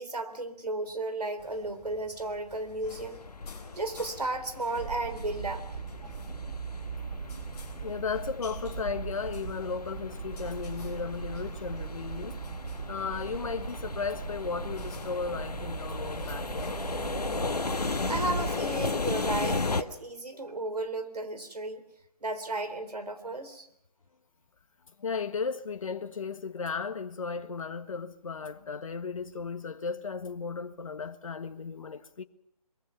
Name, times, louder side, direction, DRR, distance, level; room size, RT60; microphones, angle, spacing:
voice 1, 0.0-3.2 3.7-5.6 6.0-6.1 18.0-21.8 22.2-23.7, right 2 dB, 80° right, 3.6 m, -34 dB
sound 1, 1.4-19.6, left 5 dB, 15° left, 3.8 m, -53 dB
sound 2, 2.8-19.8, left 3 dB, 75° left, 1.5 m, -36 dB
sound 3, 4.8-18.5, right 7 dB, 45° right, 0.8 m, -39 dB
voice 2, 7.8-12.5 12.9-16.8 25.0-32.2, left 5 dB, 55° left, 1.5 m, -35 dB
23.0 x 22.5 x 5.9 m
figure-of-eight pair, 150°, 20 cm